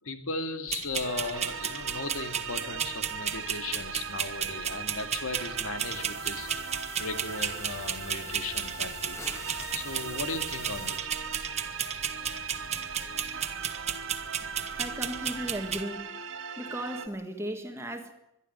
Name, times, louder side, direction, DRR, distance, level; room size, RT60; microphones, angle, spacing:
voice 1, 0.0-6.7 7.0-11.1, left 3 dB, 80° left, 6 dB, 2.5 m, -37 dB
sound 1, 0.7-15.8, right 8 dB, 30° right, 1.3 m, -34 dB
sound 2, 1.0-17.1, right 6 dB, 70° right, 1.9 m, -39 dB
sound 3, 5.8-11.0, left 3 dB, 15° left, 0.9 m, -45 dB
voice 2, 14.8-16.1 16.6-18.1, right 1 dB, 15° right, 5 dB, 1.6 m, -36 dB
22.0 x 13.0 x 9.6 m, 0.85 s
head